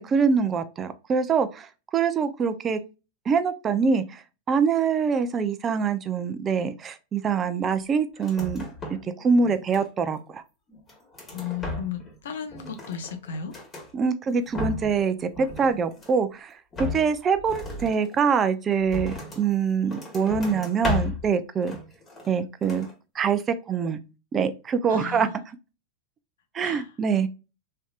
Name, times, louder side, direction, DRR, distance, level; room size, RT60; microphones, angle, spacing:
voice 1, 0.0-2.8 3.3-4.2 4.5-8.6 9.0-10.4 13.9-21.8 22.3-22.9 23.1-23.4 23.7-24.0 24.3-25.3 26.5-27.3, right 6 dB, 25° right, 0.4 m, -24 dB
sound 1, 8.2-9.1 9.4-10.2 10.7-12.2 12.4-13.9 14.3-15.0 15.3-16.3 16.7-19.5 19.9-21.3 21.6-22.4 22.6-22.9, left 2 dB, 25° left, 1.3 m, -35 dB
voice 2, 11.3-13.5 24.9-25.4 26.6-26.9, left 8 dB, 85° left, 0.7 m, -35 dB
3.3 x 2.7 x 2.4 m
hypercardioid pair, 115°, 0 cm